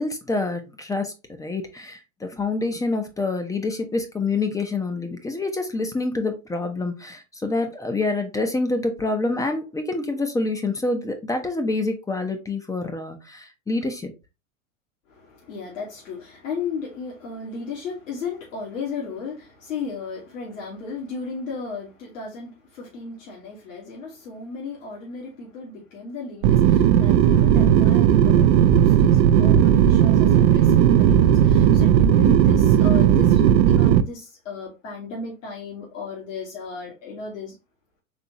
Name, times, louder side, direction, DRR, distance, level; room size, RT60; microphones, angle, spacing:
voice 1, 0.0-14.1, left 3 dB, 10° left, 0.5 m, -27 dB
voice 2, 15.1-37.6, left 5 dB, 70° left, 1.7 m, -35 dB
sound 1, 26.4-34.0, right 10 dB, 50° right, 0.5 m, -16 dB
4.2 x 3.4 x 2.9 m
hypercardioid pair, 105°, 40 cm